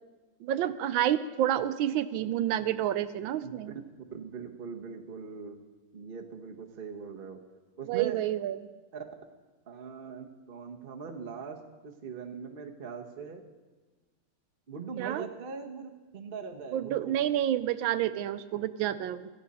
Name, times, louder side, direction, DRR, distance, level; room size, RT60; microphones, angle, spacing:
voice 1, 0.4-3.7 7.9-8.7 15.0-15.3 16.7-19.3, right 11 dB, 75° right, 13 dB, 1.3 m, -29 dB
voice 2, 3.4-3.7 4.1-5.6 5.9-7.4 7.8-8.2 8.9-9.0 9.7-11.6 11.8-13.4 14.7-17.2, right 6 dB, 35° right, 3 dB, 0.9 m, -41 dB
16.5 x 15.0 x 4.2 m, 1.3 s
omnidirectional pair, 2.4 m